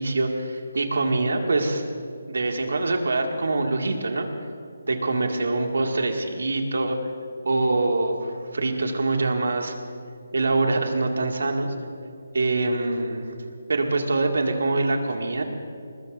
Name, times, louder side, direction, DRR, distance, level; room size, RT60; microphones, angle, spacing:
voice 1, 0.0-1.8 2.3-4.3 4.9-7.0 7.4-9.7 10.3-11.7 12.3-13.2 13.7-15.4, right 2 dB, 80° right, 3 dB, 2.1 m, -24 dB
24.5 x 20.0 x 2.6 m, 2.5 s
hypercardioid pair, 170°, 0 cm